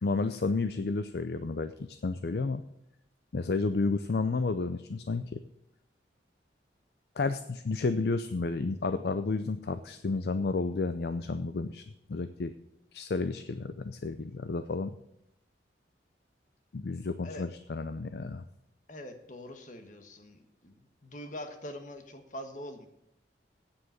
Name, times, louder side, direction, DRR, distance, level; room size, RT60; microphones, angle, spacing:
voice 1, 0.0-2.6 3.3-5.4 7.2-11.8 12.1-12.5 12.9-14.9 16.7-18.4, left 3 dB, 60° left, 11 dB, 0.5 m, -31 dB
voice 2, 18.9-22.9, left 1 dB, 45° left, 7 dB, 1.4 m, -44 dB
8.7 x 7.6 x 8.0 m, 0.82 s
head